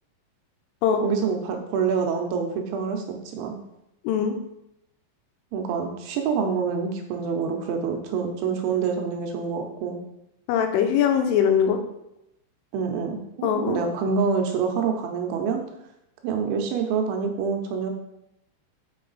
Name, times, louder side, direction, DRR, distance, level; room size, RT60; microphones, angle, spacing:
voice 1, 1.0-3.6 5.5-10.0 12.7-15.6 16.2-17.9, right 6 dB, 80° right, 3 dB, 3.0 m, -26 dB
voice 2, 4.0-4.4 10.5-11.8 13.4-13.8, left 8 dB, 85° left, 5 dB, 3.2 m, -21 dB
6.7 x 5.6 x 4.0 m, 0.83 s
omnidirectional pair, 5.6 m